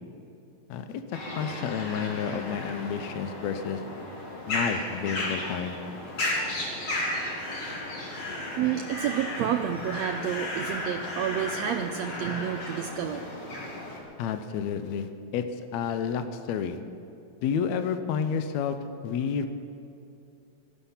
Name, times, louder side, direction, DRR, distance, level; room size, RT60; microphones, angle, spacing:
voice 1, 0.7-3.8 4.5-5.8 14.2-16.8 17.4-18.8 19.0-19.5, left 7 dB, 70° left, 9 dB, 1.8 m, -30 dB
sound 1, 1.1-14.0, left 1 dB, 50° left, 3.5 m, -34 dB
voice 2, 8.6-13.5, right 9 dB, 90° right, 5 dB, 1.5 m, -30 dB
17.5 x 12.5 x 5.7 m, 2.7 s
omnidirectional pair, 3.7 m